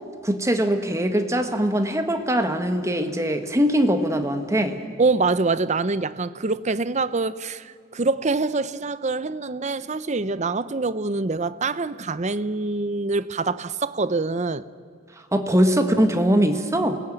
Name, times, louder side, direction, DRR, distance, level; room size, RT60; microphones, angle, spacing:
voice 1, 0.2-4.8 15.3-17.0, equal, 15° right, 1.6 m, -21 dB
voice 2, 5.0-14.6, right 3 dB, 35° right, 0.7 m, -25 dB
27.5 x 19.5 x 9.2 m
head